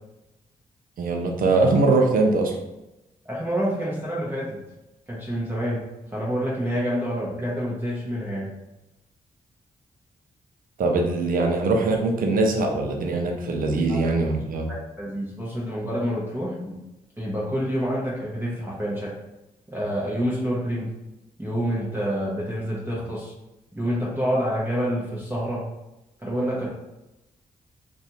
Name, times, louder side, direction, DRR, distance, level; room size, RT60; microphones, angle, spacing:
voice 1, 1.0-2.6 10.8-14.7, right 3 dB, 65° right, 2 dB, 0.6 m, -22 dB
voice 2, 3.2-4.6 5.1-5.8 6.1-8.5 15.0-16.8 17.2-19.1 19.7-20.9 21.4-23.3 23.7-25.6 26.2-26.7, equal, 15° right, -7 dB, 0.9 m, -27 dB
2.5 x 2.3 x 2.8 m, 0.96 s
supercardioid pair, 55°, 15 cm